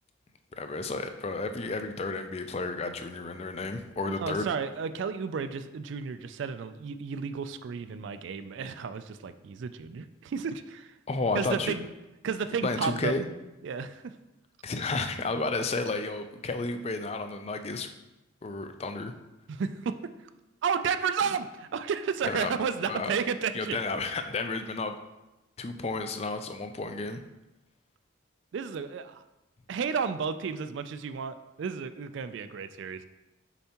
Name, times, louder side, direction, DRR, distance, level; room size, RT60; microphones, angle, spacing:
voice 1, 0.6-4.5 11.1-11.7 12.6-13.2 14.6-17.9 18.4-19.1 22.2-22.5 22.9-23.1 23.5-24.9 25.6-27.2, left 3 dB, 30° left, 8 dB, 0.4 m, -32 dB
voice 2, 4.1-10.9 11.3-11.9 12.2-13.1 13.6-14.1 19.5-20.0 20.6-23.8 28.5-29.2 29.7-33.1, right 6 dB, 65° right, 11 dB, 0.3 m, -32 dB
7.0 x 5.4 x 2.9 m, 0.99 s
head